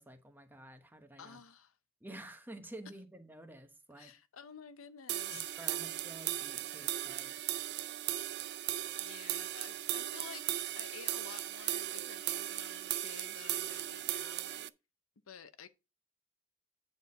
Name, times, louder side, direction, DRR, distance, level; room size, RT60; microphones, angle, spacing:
voice 1, 0.0-1.4 2.0-4.1 5.3-7.4, right 1 dB, 10° right, 1.2 m, -51 dB
voice 2, 1.2-1.8 4.0-5.9 9.0-14.7 15.3-15.7, left 7 dB, 80° left, 0.7 m, -52 dB
sound 1, 5.1-14.7, right 13 dB, 55° right, 0.4 m, -37 dB
9.2 x 4.3 x 5.2 m
head